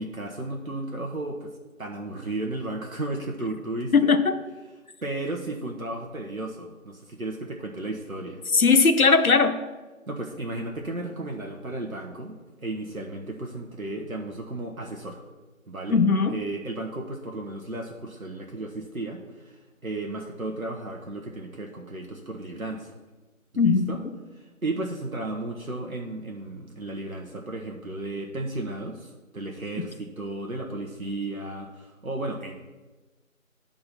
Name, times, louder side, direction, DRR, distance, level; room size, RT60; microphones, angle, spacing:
voice 1, 0.0-1.5 1.8-4.1 5.0-8.4 10.1-15.2 15.7-16.0 16.3-22.9 23.5-24.0 24.4-32.5, right 2 dB, 80° right, 0 dB, 1.1 m, -34 dB
voice 2, 3.9-4.4 8.5-9.5 15.9-16.4 23.6-24.1, left 4 dB, 85° left, 10 dB, 0.8 m, -19 dB
10.0 x 3.8 x 5.8 m, 1.2 s
figure-of-eight pair, 170°, 41 cm